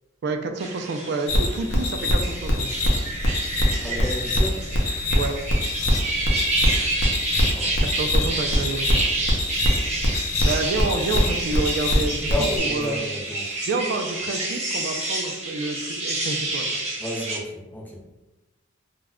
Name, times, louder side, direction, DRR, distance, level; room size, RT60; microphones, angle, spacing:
voice 1, 0.2-2.7 5.1-5.4 7.8-9.0 10.4-12.3 12.6-13.0 13.7-16.7, right 3 dB, 55° right, 5 dB, 0.3 m, -28 dB
sound 1, 0.6-17.4, right 2 dB, 35° right, 0.8 m, -29 dB
sound 2, 1.3-12.6, left 1 dB, 65° left, 0.6 m, -23 dB
voice 2, 3.8-4.6 7.3-7.7 12.3-13.6 17.0-18.0, equal, 10° left, -2 dB, 0.5 m, -31 dB
2.3 x 2.1 x 3.4 m, 1.1 s
head